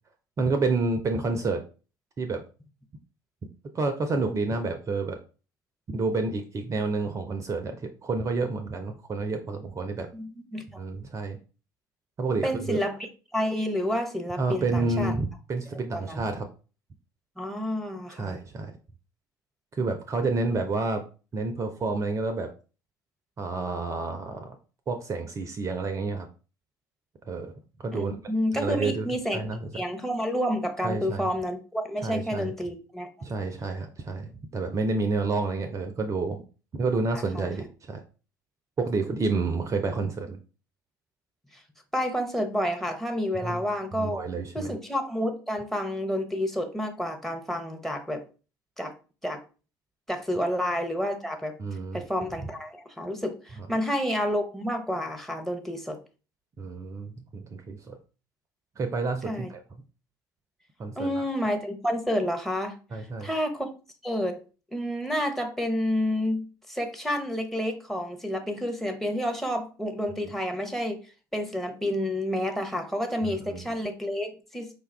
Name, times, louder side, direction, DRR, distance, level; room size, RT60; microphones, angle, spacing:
voice 1, 0.4-1.6 2.2-2.4 3.7-5.2 5.9-10.1 10.8-11.4 12.2-12.8 14.4-16.5 18.1-18.7 19.7-21.0 21.3-22.5 23.4-24.6 24.9-26.3 27.3-27.5 27.8-28.1 28.5-29.1 29.3-29.7 30.8-31.3 32.0-32.5 33.2-36.4 36.7-38.0 38.8-40.4 43.4-43.6 43.9-44.7 51.6-52.0 56.6-58.0 58.8-59.6 60.8-61.2 62.9-63.3 73.2-73.6, right 3 dB, 30° right, 6 dB, 0.5 m, -29 dB
voice 2, 10.1-10.8 12.4-13.0 13.3-15.1 15.7-16.2 17.4-18.4 27.9-29.4 29.7-33.1 37.1-37.5 41.9-44.2 44.5-48.2 48.8-48.9 49.2-49.4 50.1-51.6 51.9-56.0 59.2-59.5 61.0-62.8 63.2-63.7 64.0-64.4 64.7-71.0 71.3-74.7, equal, 5° left, 7 dB, 0.8 m, -29 dB
4.9 x 2.3 x 3.3 m, 0.35 s
figure-of-eight pair, 60°, 11 cm